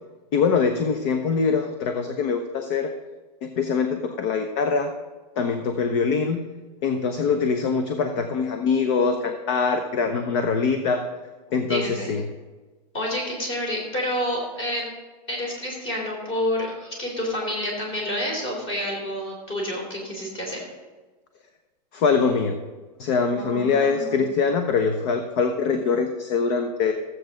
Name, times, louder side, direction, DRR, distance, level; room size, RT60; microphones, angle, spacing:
voice 1, 0.3-2.9 3.4-4.9 5.4-6.4 6.8-11.0 11.5-12.2 21.9-22.6 23.0-26.9, left 5 dB, 45° left, 7 dB, 0.9 m, -23 dB
voice 2, 11.7-12.1 12.9-14.9 15.3-20.6 23.3-24.2, left 1 dB, 25° left, -1 dB, 3.8 m, -29 dB
15.0 x 7.9 x 3.9 m, 1.3 s
supercardioid pair, 155°, 21 cm